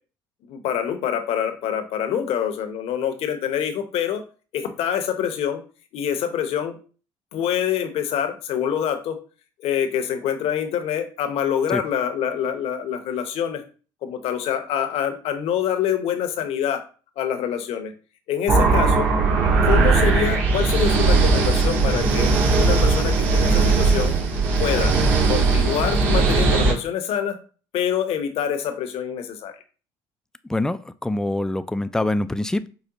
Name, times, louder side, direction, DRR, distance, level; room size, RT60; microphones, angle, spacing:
voice 1, 0.5-4.2 4.5-5.6 5.9-6.8 7.3-9.2 9.6-13.6 14.0-16.8 17.2-17.9 18.3-19.1 19.6-24.1 24.6-24.9 25.3-27.4 27.7-29.5, left 9 dB, 65° left, 6 dB, 0.8 m, -25 dB
sound 1, 18.5-26.7, right 4 dB, 65° right, 2.1 m, -18 dB
voice 2, 30.5-32.7, left 2 dB, 5° left, 13 dB, 0.3 m, -24 dB
4.9 x 2.1 x 3.9 m, 0.38 s
supercardioid pair, 75°, 11 cm